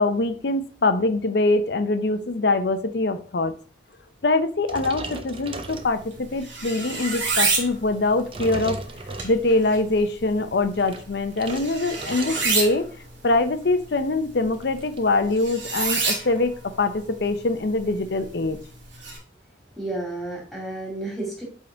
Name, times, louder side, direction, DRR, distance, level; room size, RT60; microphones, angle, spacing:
voice 1, 0.0-3.5 4.2-8.8 9.2-12.9 13.2-18.6, left 2 dB, 60° left, 10 dB, 0.6 m, -23 dB
sound 1, 4.6-6.4 6.9-7.2 7.9-9.7 10.6-12.8 13.1-13.4 13.7-13.8 14.0-15.1, right 2 dB, 30° right, 0.6 m, -37 dB
sound 2, 5.7-19.2, right 4 dB, 75° right, 2.1 m, -31 dB
voice 2, 19.8-21.4, right 2 dB, ahead, -2 dB, 2.2 m, -31 dB
7.7 x 3.7 x 3.8 m, 0.42 s
head